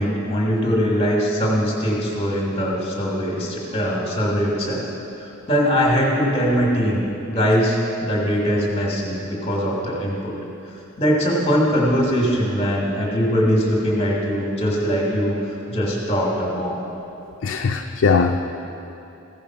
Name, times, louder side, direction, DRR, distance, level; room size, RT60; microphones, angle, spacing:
voice 1, 0.0-4.9 5.5-7.0 7.3-10.4 11.0-15.3 15.7-16.8, equal, 30° left, -3 dB, 1.3 m, -21 dB
voice 2, 17.4-18.4, left 5 dB, 65° left, 3 dB, 0.4 m, -19 dB
15.0 x 5.1 x 5.6 m, 2.9 s
head